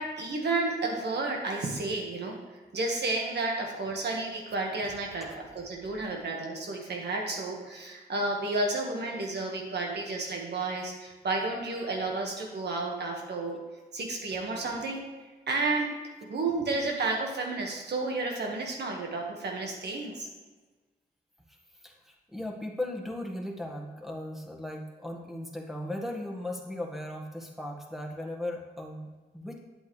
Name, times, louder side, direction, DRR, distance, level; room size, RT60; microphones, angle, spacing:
voice 1, 0.0-2.4 2.7-13.6 13.9-15.0 15.5-15.9 16.2-20.3, right 3 dB, 75° right, 1 dB, 1.6 m, -31 dB
voice 2, 21.8-29.6, left 1 dB, ahead, 0 dB, 1.6 m, -37 dB
8.7 x 8.1 x 3.3 m, 1.3 s
cardioid pair, 65°, 17 cm